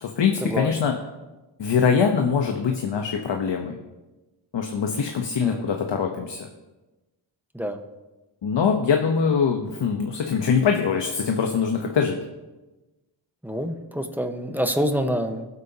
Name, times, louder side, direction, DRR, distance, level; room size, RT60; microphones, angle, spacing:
voice 1, 0.0-0.9 1.6-3.8 4.5-6.5 8.4-12.2, left 6 dB, 65° left, 3 dB, 1.2 m, -23 dB
voice 2, 13.4-15.5, equal, 5° right, 5 dB, 1.3 m, -26 dB
21.0 x 8.1 x 2.9 m, 1.1 s
cardioid pair, 75°, 47 cm